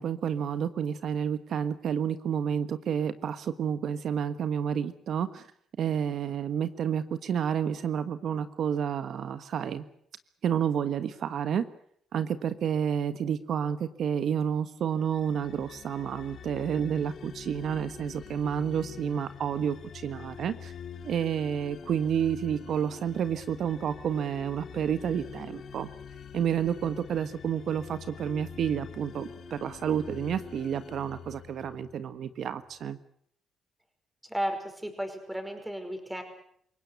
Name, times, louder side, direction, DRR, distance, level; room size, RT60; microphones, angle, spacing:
voice 1, 0.0-5.4 5.8-9.8 10.4-11.6 12.1-20.7 21.0-25.9 26.3-33.0, right 8 dB, 65° right, 12 dB, 1.3 m, -30 dB
sound 1, 15.0-32.1, left 7 dB, 60° left, 3.1 m, -45 dB
voice 2, 34.3-36.2, equal, 5° right, 5 dB, 5.4 m, -34 dB
27.5 x 17.5 x 8.3 m, 0.67 s
cardioid pair, 90°, 0 cm